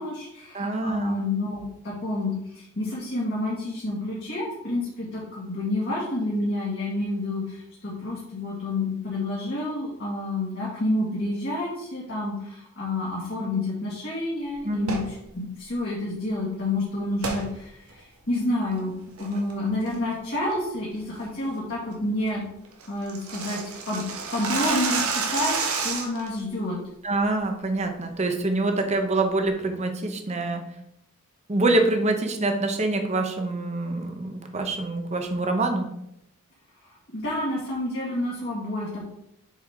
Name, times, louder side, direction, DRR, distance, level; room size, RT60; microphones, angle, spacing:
voice 1, 0.0-22.4 22.9-23.6 23.9-24.0 24.3-26.8 37.1-39.0, left 2 dB, 50° left, -6 dB, 1.9 m, -29 dB
voice 2, 0.5-1.2 14.6-15.0 27.0-30.6 31.5-35.9, right 2 dB, 30° right, 5 dB, 0.9 m, -25 dB
sound 1, 14.8-15.1 17.2-17.4 17.9-18.0 18.5-18.8 19.2-19.5 19.9-20.1 20.5-20.6 21.0-21.2 21.6-21.7 22.0-22.1 22.3-22.4 22.6-26.3, right 5 dB, 80° right, 1.3 m, -29 dB
7.5 x 4.9 x 3.6 m, 0.77 s
head